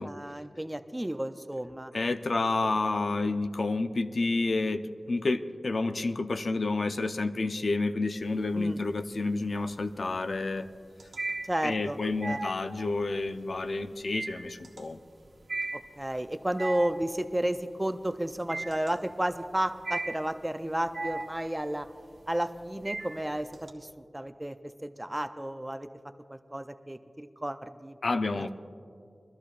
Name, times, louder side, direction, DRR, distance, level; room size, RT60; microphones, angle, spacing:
voice 1, 0.0-1.9 8.5-8.8 11.4-12.0 12.2-12.4 15.7-21.9 22.3-23.9 24.1-24.6 24.8-25.9 26.3-28.0 28.3-28.5, right 1 dB, 15° right, 9 dB, 0.4 m, -32 dB
voice 2, 1.9-4.8 5.1-10.7 11.6-15.0 28.0-28.5, left 3 dB, 70° left, 9 dB, 0.5 m, -29 dB
sound 1, 8.2-8.8 9.2-23.7, right 2 dB, 85° right, 1.1 m, -38 dB
23.0 x 13.5 x 2.5 m, 2.4 s
wide cardioid pair, 75°, 0 cm